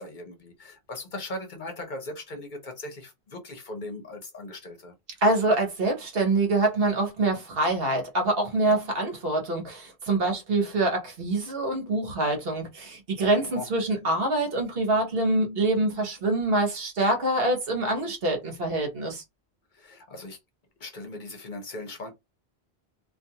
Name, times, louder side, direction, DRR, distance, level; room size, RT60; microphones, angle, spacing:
voice 1, 0.0-4.9 8.6-8.8 13.3-13.7 19.7-20.4 20.8-22.1, left 2 dB, 50° left, 0.9 m, -39 dB
voice 2, 5.2-19.2, right 2 dB, 70° right, 1.2 m, -25 dB
2.5 x 2.4 x 2.8 m
omnidirectional pair, 1.0 m